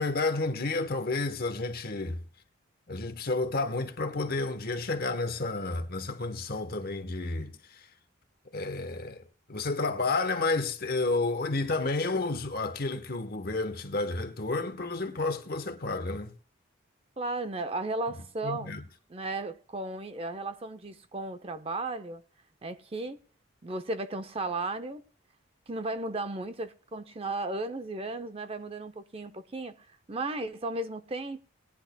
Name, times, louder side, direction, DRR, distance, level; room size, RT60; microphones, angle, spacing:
voice 1, 0.0-2.2 2.9-7.8 8.5-9.2 9.5-16.3 18.4-18.8, left 3 dB, 45° left, 1.0 m, -31 dB
voice 2, 17.2-18.7 19.1-22.2 22.6-23.2 23.6-25.0 25.7-29.8 30.1-31.4, right 2 dB, 30° right, 0.6 m, -35 dB
20.0 x 10.0 x 2.2 m
head